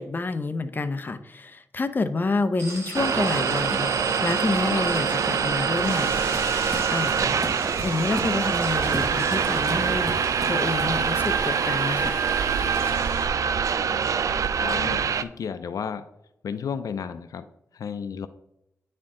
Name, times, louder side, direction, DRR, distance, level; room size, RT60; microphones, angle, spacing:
voice 1, 0.0-6.2 6.9-7.4 7.8-10.1 10.5-12.2, left 3 dB, 35° left, 10 dB, 0.6 m, -28 dB
sound 1, 2.6-13.2, right 2 dB, 50° right, 2.3 m, -36 dB
sound 2, 2.9-15.2, right 6 dB, 70° right, 0.3 m, -24 dB
sound 3, 5.4-11.4, equal, 5° right, 1.2 m, -39 dB
voice 2, 14.5-16.1 16.4-18.3, left 7 dB, 85° left, 12 dB, 0.4 m, -33 dB
9.6 x 4.3 x 3.7 m, 0.82 s
wide cardioid pair, 105°, 6 cm